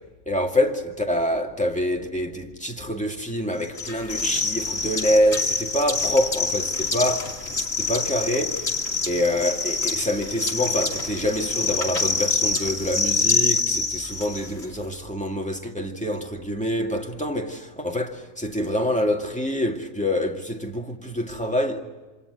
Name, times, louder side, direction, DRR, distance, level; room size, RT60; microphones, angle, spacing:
voice 1, 0.3-7.5 7.8-8.7 9.1-21.8, left 1 dB, 5° left, 2.1 m, -26 dB
sound 1, 3.8-14.7, left 4 dB, 45° left, 2.9 m, -26 dB
28.0 x 26.0 x 8.0 m
omnidirectional pair, 1.6 m